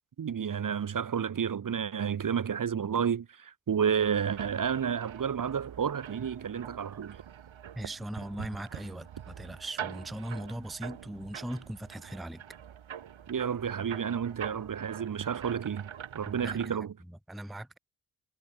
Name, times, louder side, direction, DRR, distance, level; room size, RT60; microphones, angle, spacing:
voice 1, 0.2-7.2 13.3-15.9 16.1-17.0, right 7 dB, 45° right, 0.9 m, -31 dB
sound 1, 4.0-16.8, right 9 dB, 80° right, 5.8 m, -45 dB
voice 2, 7.8-12.4 16.4-16.7 17.3-17.8, right 1 dB, ahead, 0.6 m, -39 dB
supercardioid pair, 45°, 46 cm